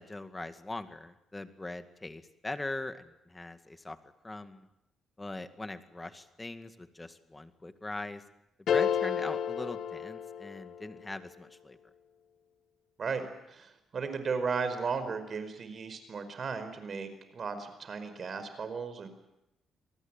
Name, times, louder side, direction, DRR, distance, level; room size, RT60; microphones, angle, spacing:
voice 1, 0.0-4.0 4.2-4.7 5.2-8.2 8.7-11.8, left 2 dB, 15° left, 9 dB, 2.0 m, -41 dB
sound 1, 8.7-10.9, left 8 dB, 65° left, 1.3 m, -31 dB
voice 2, 13.5-19.1, right 5 dB, 45° right, 10 dB, 4.9 m, -35 dB
27.0 x 19.0 x 9.0 m, 0.88 s
cardioid pair, 95°, 0 cm